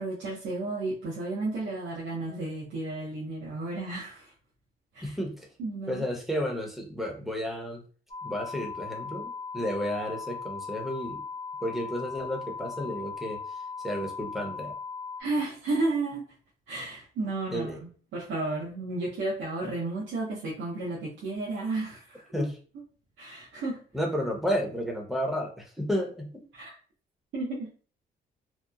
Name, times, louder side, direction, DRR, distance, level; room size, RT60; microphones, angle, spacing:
voice 1, 0.0-4.3 4.9-5.2 5.6-6.0 15.2-16.2 16.7-17.8 18.1-22.5 23.2-23.8 26.5-26.7 27.3-27.7, right 2 dB, 75° right, -5 dB, 0.7 m, -32 dB
voice 2, 5.0-5.5 5.9-7.8 8.2-11.2 11.6-13.4 13.8-14.7 17.5-17.8 22.3-22.5 23.9-26.4, equal, ahead, 1 dB, 0.7 m, -32 dB
sound 1, 8.1-15.2, left 5 dB, 35° left, 0.7 m, -38 dB
2.9 x 2.0 x 2.3 m, 0.41 s
cardioid pair, 90°, 20 cm